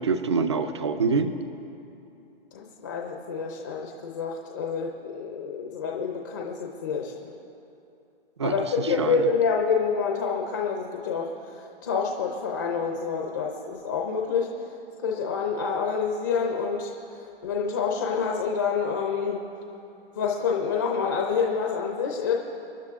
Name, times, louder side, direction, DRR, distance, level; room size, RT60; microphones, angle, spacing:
voice 1, 0.0-1.3 8.4-9.3, right 4 dB, 30° right, 9 dB, 0.6 m, -26 dB
voice 2, 2.5-7.3 8.4-14.5 15.0-16.9 17.4-19.5 20.2-22.3, left 5 dB, 20° left, 0 dB, 0.7 m, -27 dB
26.5 x 11.0 x 3.6 m, 2.7 s
hypercardioid pair, 175°, 31 cm